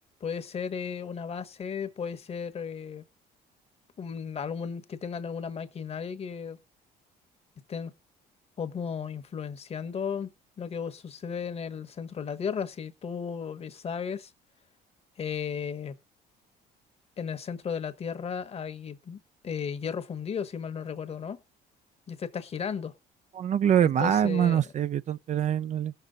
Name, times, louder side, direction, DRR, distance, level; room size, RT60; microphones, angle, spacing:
voice 1, 0.2-3.0 4.0-6.6 7.7-7.9 8.6-10.3 10.6-14.3 15.2-16.0 17.2-21.4 22.1-22.9 23.8-24.6, left 7 dB, 40° left, 1.1 m, -35 dB
voice 2, 23.4-25.9, right 9 dB, 45° right, 0.5 m, -24 dB
18.5 x 6.8 x 3.9 m
cardioid pair, 110°, 17 cm